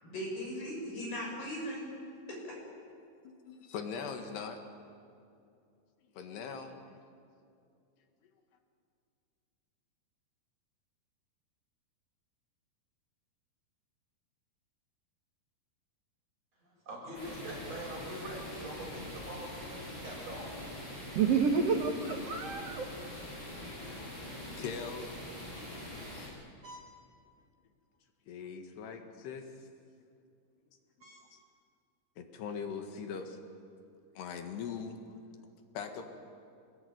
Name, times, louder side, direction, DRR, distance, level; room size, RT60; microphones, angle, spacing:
voice 1, 0.0-1.9 2.3-2.5, equal, 65° left, -1 dB, 8.6 m, -38 dB
voice 2, 3.2-4.6 6.2-6.7 24.6-25.2 26.1-26.3 28.3-29.5 31.3-31.4 32.2-33.4 34.2-35.0 35.8-36.0, left 6 dB, 85° left, 5 dB, 3.9 m, -41 dB
voice 3, 16.6-20.5, right 1 dB, 40° right, -3 dB, 9.0 m, -43 dB
sound 1, 17.1-26.3, left 1 dB, 30° left, 8.2 m, -44 dB
voice 4, 21.2-22.9 26.6-26.8 31.0-31.2, right 5 dB, 55° right, 3 dB, 1.8 m, -30 dB
27.5 x 20.5 x 9.5 m, 2.5 s
omnidirectional pair, 4.6 m